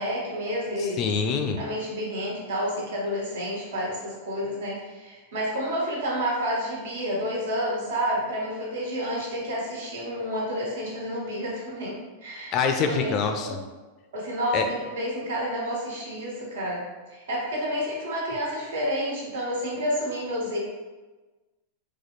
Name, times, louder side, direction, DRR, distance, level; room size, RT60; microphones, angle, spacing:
voice 1, 0.0-1.1 1.6-12.6 13.0-13.1 14.1-16.8 17.1-20.6, equal, 90° right, -4 dB, 1.5 m, -29 dB
voice 2, 0.8-1.6 12.5-13.6 14.5-14.6, left 5 dB, 30° left, 5 dB, 0.3 m, -25 dB
4.0 x 2.3 x 3.1 m, 1.2 s
supercardioid pair, 160°, 0 cm